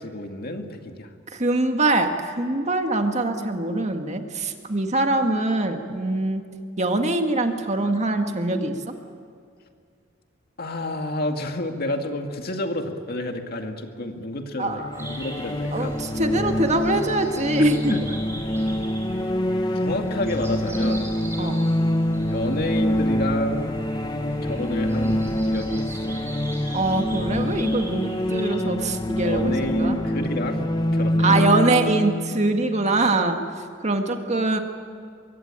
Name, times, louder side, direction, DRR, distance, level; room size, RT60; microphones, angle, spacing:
voice 1, 0.0-1.1 10.6-15.9 17.6-18.2 19.7-21.1 22.2-23.8 24.4-26.2 29.2-30.6 30.9-31.5, left 1 dB, 50° left, 4 dB, 2.2 m, -30 dB
voice 2, 1.3-6.4 6.8-8.7 14.6-14.9 15.7-17.9 21.4-21.6 26.7-29.5 29.8-30.0 31.2-33.4 33.8-34.6, right 2 dB, 35° right, 5 dB, 1.8 m, -23 dB
sound 1, 14.8-33.4, left 1 dB, 20° left, 1.0 m, -26 dB
sound 2, 14.9-28.5, right 2 dB, 15° right, 5.7 m, -43 dB
23.5 x 23.5 x 8.9 m, 2.2 s
head